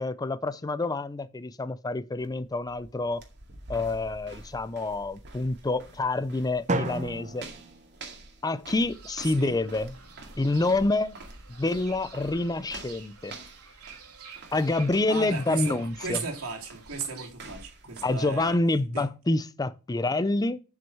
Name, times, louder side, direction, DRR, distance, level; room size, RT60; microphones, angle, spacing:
voice 1, 0.0-3.2 3.7-7.5 8.4-9.9 10.4-11.2 11.5-13.3 14.5-16.2 18.0-20.6, left 2 dB, 15° left, 0.4 m, -27 dB
sound 1, 2.2-18.5, right 2 dB, 50° right, 2.1 m, -48 dB
Drum, 6.7-8.7, right 2 dB, 35° right, 0.8 m, -33 dB
Fowl / Bird, 8.9-17.3, right 6 dB, 85° right, 3.0 m, -49 dB
voice 2, 9.2-9.5 15.1-18.6 18.9-19.0, right 4 dB, 70° right, 2.8 m, -35 dB
7.5 x 6.2 x 7.0 m
head